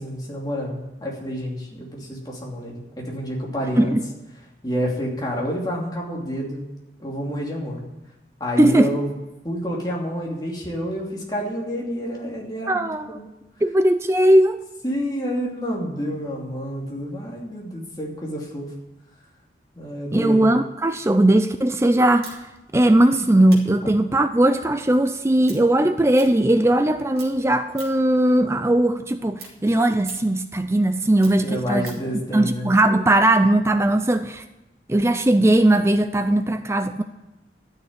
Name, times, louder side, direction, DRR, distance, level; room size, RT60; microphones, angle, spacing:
voice 1, 0.0-4.0 4.6-6.6 7.0-7.8 8.4-9.1 9.4-13.2 14.8-18.7 19.8-20.5 31.4-32.7, equal, 20° left, -2 dB, 2.8 m, -29 dB
voice 2, 8.6-8.9 12.7-13.2 13.6-14.6 20.1-31.9 32.3-34.4 34.9-37.0, right 1 dB, 15° right, 9 dB, 0.4 m, -19 dB
sound 1, 22.2-26.9 27.1-28.2 28.5-32.1, right 5 dB, 55° right, 3.1 m, -45 dB
12.0 x 6.6 x 9.5 m, 0.97 s
head